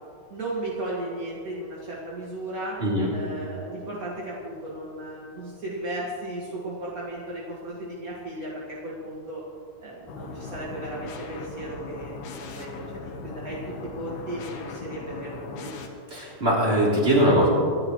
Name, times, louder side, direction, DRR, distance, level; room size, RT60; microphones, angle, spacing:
voice 1, 0.3-2.8 3.1-9.4 9.8-15.7, right 1 dB, 35° right, -6 dB, 1.5 m, -35 dB
voice 2, 2.8-3.1 16.1-17.5, equal, 15° right, -5 dB, 3.5 m, -21 dB
sound 1, 10.1-15.9, left 4 dB, 85° left, 3.3 m, -39 dB
27.0 x 12.0 x 3.2 m, 2.3 s
omnidirectional pair, 4.4 m